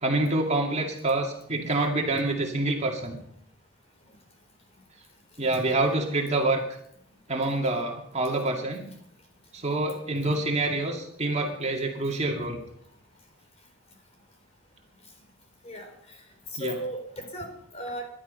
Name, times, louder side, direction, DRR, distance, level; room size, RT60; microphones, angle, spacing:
voice 1, 0.0-3.2 5.4-6.6 7.3-8.9 9.5-12.6 16.6-16.8, right 2 dB, 30° right, 1 dB, 2.3 m, -27 dB
voice 2, 15.6-16.2 16.5-18.1, equal, 30° left, 4 dB, 4.2 m, -37 dB
20.5 x 12.0 x 5.4 m, 0.72 s
head